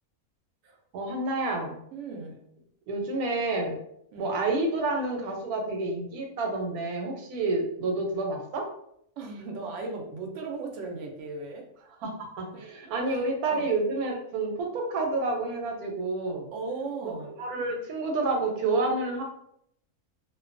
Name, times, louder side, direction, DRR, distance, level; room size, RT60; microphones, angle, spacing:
voice 1, 0.9-1.8 2.9-3.8 4.2-8.7 12.0-16.5 17.0-17.1 17.4-19.2, right 2 dB, 85° right, 2 dB, 1.1 m, -29 dB
voice 2, 1.9-2.4 4.1-4.3 9.2-11.6 12.5-12.6 13.1-13.7 16.5-17.3, right 3 dB, 65° right, 2 dB, 0.8 m, -37 dB
2.6 x 2.2 x 2.4 m, 0.73 s
omnidirectional pair, 1.5 m